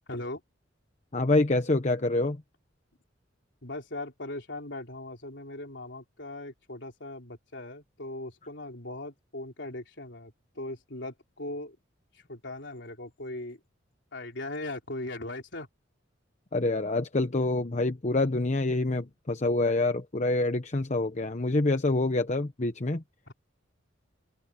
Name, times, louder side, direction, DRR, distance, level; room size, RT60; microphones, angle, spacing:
voice 1, 0.1-0.4 3.6-11.8 12.1-13.6 14.1-15.7 23.3-23.4, left 2 dB, 65° left, 4.0 m, -39 dB
voice 2, 1.1-2.4 16.5-23.0, left 2 dB, 40° left, 0.9 m, -26 dB
open air
head